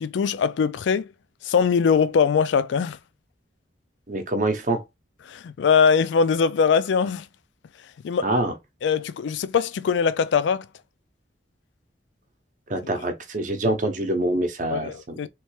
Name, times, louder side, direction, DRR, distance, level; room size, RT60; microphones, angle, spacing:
voice 1, 0.0-1.1 1.4-3.0 5.3-7.3 8.0-8.3 8.8-10.6 14.7-15.3, left 6 dB, 80° left, 0.3 m, -21 dB
voice 2, 4.1-4.8 8.2-8.5 12.7-15.2, right 1 dB, 45° right, 0.7 m, -25 dB
3.2 x 3.1 x 3.1 m
head